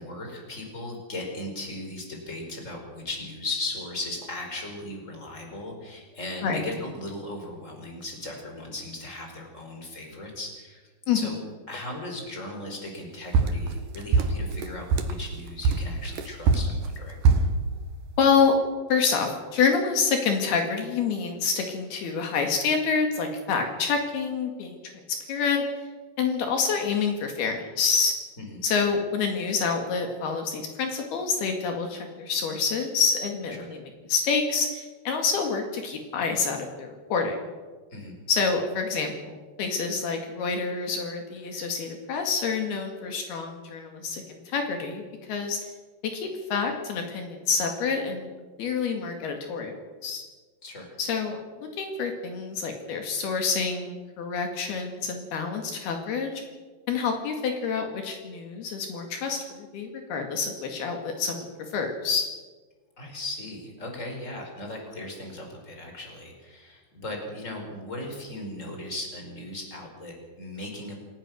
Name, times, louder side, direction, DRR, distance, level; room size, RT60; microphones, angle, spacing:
voice 1, 0.0-11.4 11.7-17.2 28.4-28.6 33.6-33.7 37.9-38.1 50.6-51.0 63.0-70.9, left 2 dB, 15° left, 2 dB, 5.2 m, -37 dB
sound 1, 13.3-15.2 15.6-17.6, right 4 dB, 65° right, 2.8 m, -22 dB
voice 2, 18.2-18.5 18.9-24.9 25.3-25.9 26.2-28.2 28.6-33.8 34.1-37.4 38.3-45.7 46.0-48.3 48.6-50.2 51.0-51.4 51.8-56.4 56.9-62.3, left 5 dB, 75° left, 3 dB, 4.0 m, -27 dB
28.0 x 18.5 x 6.4 m, 1.4 s
omnidirectional pair, 4.6 m